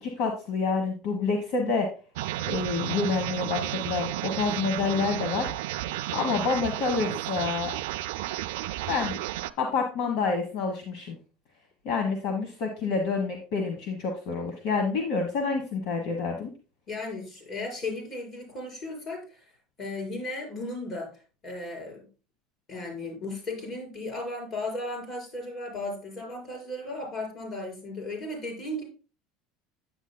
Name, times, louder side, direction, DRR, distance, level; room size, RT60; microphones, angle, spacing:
voice 1, 0.0-1.9 2.5-5.5 6.1-7.7 8.9-9.2 9.6-11.2 11.8-16.5, left 4 dB, 65° left, 3 dB, 1.3 m, -28 dB
sound 1, 2.2-9.5, right 15 dB, 85° right, 0.4 m, -32 dB
voice 2, 16.9-19.5 19.8-21.1 21.4-22.1 22.7-28.8, left 2 dB, 40° left, 0 dB, 4.7 m, -35 dB
9.0 x 8.1 x 2.2 m, 0.35 s
supercardioid pair, 135°, 0 cm